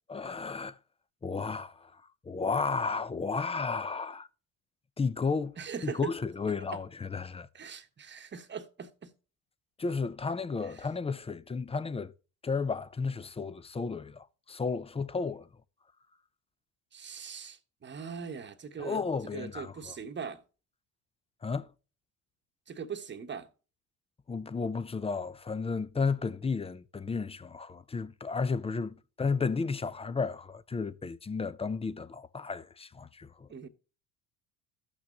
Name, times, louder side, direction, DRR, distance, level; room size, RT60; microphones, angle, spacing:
voice 1, 0.1-0.8 1.2-4.3 5.0-5.6 5.8-7.5 9.8-12.1 12.4-15.5 18.8-19.9 21.4-21.7 24.3-33.5, left 4 dB, 15° left, 0.5 m, -33 dB
voice 2, 5.6-6.1 6.7-6.8 7.5-9.1 10.7-10.9 16.9-19.0 19.3-20.4 22.7-23.5 33.5-33.7, right 6 dB, 25° right, 1.1 m, -40 dB
14.0 x 6.0 x 2.9 m
hypercardioid pair, 70°, 42 cm